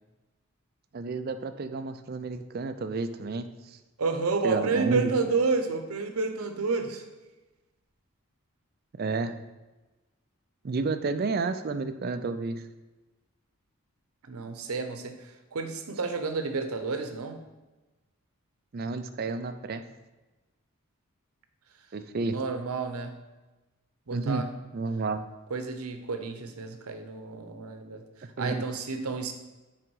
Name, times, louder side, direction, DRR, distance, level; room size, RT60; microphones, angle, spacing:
voice 1, 0.9-3.8 4.4-5.0 8.9-9.3 10.6-12.7 18.7-19.9 21.9-22.4 24.1-24.4 24.7-25.2 28.4-28.6, right 3 dB, 45° right, 10 dB, 0.4 m, -31 dB
voice 2, 4.0-7.0 14.3-17.4 22.2-23.2 24.1-24.5 25.5-28.0 28.4-29.3, right 4 dB, 90° right, 7 dB, 0.7 m, -30 dB
6.0 x 4.9 x 4.7 m, 1.1 s
head